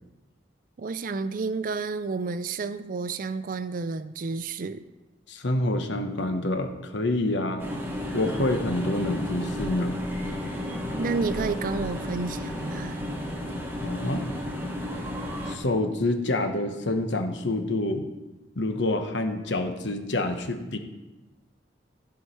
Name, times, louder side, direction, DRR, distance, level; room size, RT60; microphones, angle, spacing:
voice 1, 0.8-4.8 11.0-13.0, right 4 dB, 45° right, 13 dB, 0.4 m, -30 dB
voice 2, 5.3-7.7 8.1-10.0 13.8-14.3 15.5-18.1 18.6-20.8, left 1 dB, 75° left, 6 dB, 1.0 m, -27 dB
sound 1, 7.6-15.6, left 1 dB, 10° right, 1.3 m, -33 dB
14.0 x 4.8 x 5.6 m, 1.1 s
head